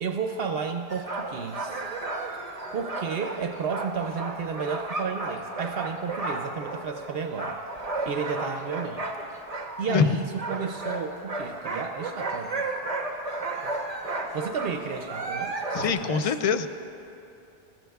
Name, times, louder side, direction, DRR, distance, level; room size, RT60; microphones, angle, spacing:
voice 1, 0.0-1.8 2.7-7.6 8.0-9.1 9.8-12.7 13.6-13.7 14.3-16.3, right 6 dB, 70° right, 5 dB, 0.8 m, -32 dB
sound 1, 0.9-10.1 10.4-15.9, right 2 dB, 40° right, 1.0 m, -33 dB
voice 2, 15.7-16.7, left 6 dB, 50° left, 9 dB, 0.5 m, -24 dB
22.5 x 14.0 x 2.3 m, 2.8 s
omnidirectional pair, 1.0 m